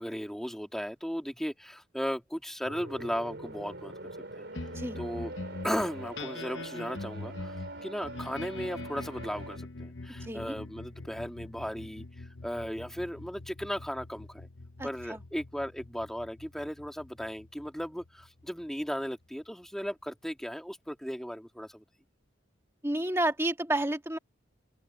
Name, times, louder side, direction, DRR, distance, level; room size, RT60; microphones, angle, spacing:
voice 1, 0.0-3.9 4.3-4.7 5.0-5.3 5.6-14.5 14.8-21.8, equal, ahead, 2.2 m, -36 dB
sound 1, 2.6-9.6, right 2 dB, 60° right, 4.8 m, -44 dB
sound 2, 4.5-19.2, left 2 dB, 65° left, 1.0 m, -44 dB
voice 2, 10.2-10.5 14.8-15.2 22.8-24.2, right 1 dB, 15° right, 1.6 m, -30 dB
open air
head